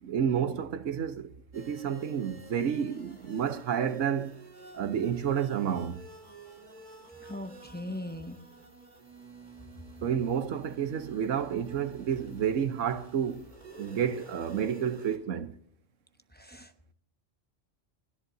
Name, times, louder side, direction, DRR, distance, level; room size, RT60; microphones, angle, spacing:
voice 1, 0.0-4.3 4.7-6.0 10.0-13.5 13.8-15.5, right 8 dB, 85° right, 1.2 m, -30 dB
sound 1, 1.5-15.2, right 2 dB, 40° right, 2.6 m, -50 dB
voice 2, 7.2-8.4 16.4-16.9, left 1 dB, 10° left, 0.7 m, -40 dB
28.5 x 10.5 x 2.7 m
omnidirectional pair, 1.2 m